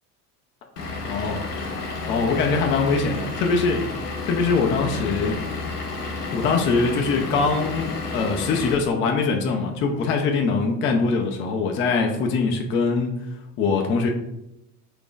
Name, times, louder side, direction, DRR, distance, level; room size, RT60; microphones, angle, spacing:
Vehicle / Engine, 0.8-8.8, left 3 dB, 80° left, 0.7 m, -31 dB
voice 1, 0.8-1.8 2.1-5.4 6.3-13.2 13.6-14.1, left 4 dB, 25° left, 2 dB, 0.4 m, -23 dB
2.8 x 2.5 x 3.8 m, 0.83 s
figure-of-eight pair, 65°, 47 cm